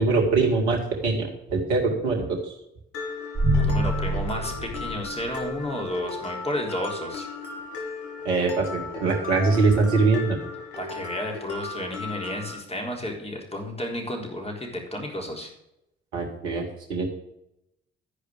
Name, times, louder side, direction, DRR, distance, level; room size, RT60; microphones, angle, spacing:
voice 1, 0.0-2.5 8.2-10.4 16.1-17.1, right 3 dB, 90° right, 1 dB, 2.1 m, -23 dB
Mallet percussion, 2.9-12.5, left 3 dB, 85° left, 2.0 m, -36 dB
sound 1, 3.3-5.6, equal, 35° right, 2.0 m, -25 dB
voice 2, 3.6-7.3 10.8-15.5, left 1 dB, 20° left, 1 dB, 4.1 m, -32 dB
13.5 x 5.1 x 6.5 m, 0.82 s
hypercardioid pair, 45°, 33 cm